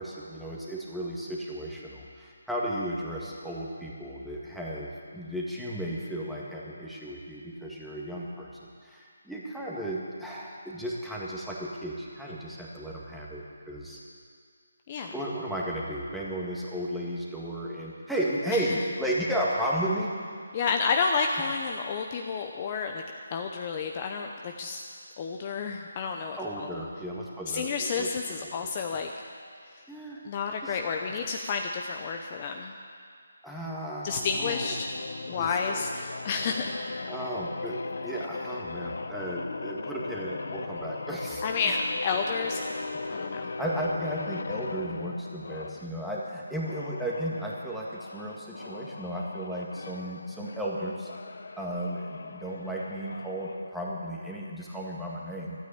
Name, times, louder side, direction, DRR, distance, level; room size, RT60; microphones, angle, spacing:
voice 1, 0.0-14.0 15.1-20.1 26.4-28.1 28.4-28.7 29.9-30.3 30.6-30.8 31.1-31.5 33.4-34.7 35.3-35.8 37.1-41.7 42.9-43.1 43.6-51.1 51.6-55.7, right 1 dB, ahead, -6 dB, 1.8 m, -34 dB
voice 2, 20.5-23.0 23.3-24.8 25.2-26.8 27.5-29.1 29.7-29.8 30.2-32.7 34.0-34.9 35.2-36.6 41.4-42.6 43.1-43.5, left 5 dB, 30° left, 3 dB, 0.8 m, -30 dB
sound 1, 34.2-45.9 46.6-53.7, left 3 dB, 65° left, 0.7 m, -38 dB
13.0 x 9.2 x 8.7 m, 2.2 s
figure-of-eight pair, 155°, 0 cm